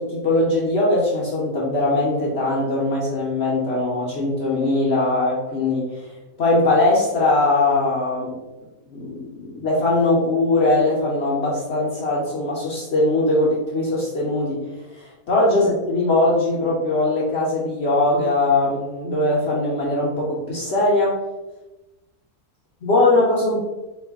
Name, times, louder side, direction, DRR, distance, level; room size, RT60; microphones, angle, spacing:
voice 1, 0.0-6.1 6.4-8.4 8.9-14.6 14.9-21.2 22.8-23.6, left 2 dB, 55° left, -5 dB, 0.8 m, -20 dB
4.3 x 2.3 x 3.4 m, 1.1 s
omnidirectional pair, 1.6 m